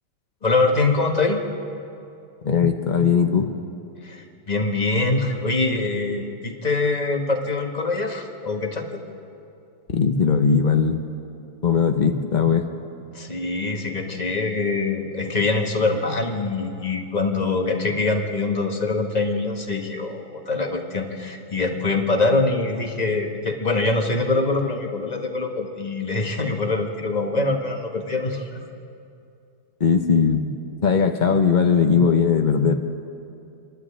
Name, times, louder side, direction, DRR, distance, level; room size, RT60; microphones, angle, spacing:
voice 1, 0.4-1.4 4.0-9.0 13.1-28.6, left 3 dB, 20° left, 2 dB, 1.3 m, -24 dB
voice 2, 2.4-3.5 9.9-11.1 11.6-12.7 29.8-30.5 30.8-32.7, left 6 dB, 85° left, 5 dB, 0.4 m, -19 dB
27.5 x 11.5 x 8.6 m, 2.6 s
omnidirectional pair, 2.4 m